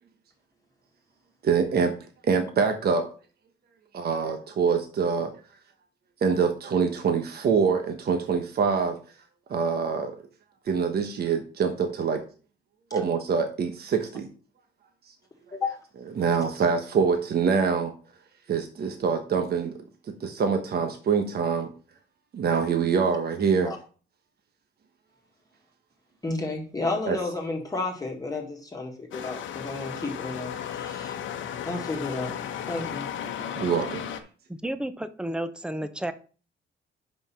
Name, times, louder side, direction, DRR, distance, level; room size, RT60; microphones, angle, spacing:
voice 1, 1.4-1.9 2.2-3.1 3.9-5.3 6.2-9.0 9.5-10.1 10.7-12.2 12.9-14.3 16.2-17.9 18.5-19.7 20.2-21.7 22.3-23.7 27.0-27.2 33.4-34.0, right 5 dB, 50° right, 5 dB, 1.1 m, -25 dB
voice 2, 26.2-31.2 31.7-32.4 32.7-33.1, left 3 dB, 20° left, 0 dB, 1.8 m, -32 dB
sound 1, 29.1-34.2, left 9 dB, 75° left, 1.0 m, -35 dB
voice 3, 34.5-36.1, right 1 dB, 5° right, 11 dB, 0.7 m, -32 dB
5.6 x 5.4 x 5.7 m, 0.38 s
cardioid pair, 90°, 20 cm